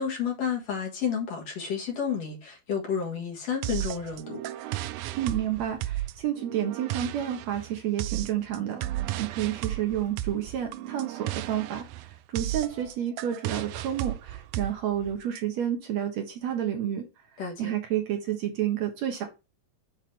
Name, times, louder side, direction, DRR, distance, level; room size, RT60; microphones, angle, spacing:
voice 1, 0.0-4.4 17.4-17.8, left 7 dB, 60° left, 2.7 m, -31 dB
sound 1, 3.6-15.4, right 15 dB, 90° right, 2.1 m, -34 dB
voice 2, 5.2-17.0 17.6-19.3, right 10 dB, 70° right, 2.0 m, -30 dB
7.7 x 4.0 x 4.2 m
omnidirectional pair, 3.6 m